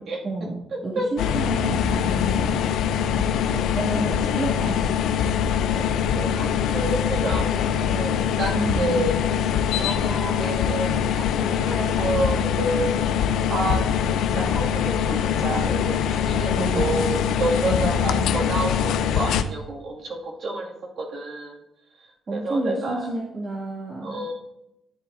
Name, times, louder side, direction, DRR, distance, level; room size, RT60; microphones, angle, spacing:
voice 1, 0.0-2.7 3.2-4.8 5.7-5.9 8.5-9.1 16.6-17.1 17.7-18.0 22.3-24.2, right 2 dB, 40° right, -5 dB, 2.3 m, -31 dB
voice 2, 0.9-1.3 5.7-9.3 9.8-12.9 13.5-13.8 14.3-21.6 22.3-23.1 24.0-24.3, right 2 dB, 65° right, -3 dB, 2.2 m, -29 dB
sound 1, 1.2-19.4, left 8 dB, 80° left, 0.5 m, -23 dB
13.5 x 7.9 x 2.7 m, 0.88 s
cardioid pair, 90°, 0 cm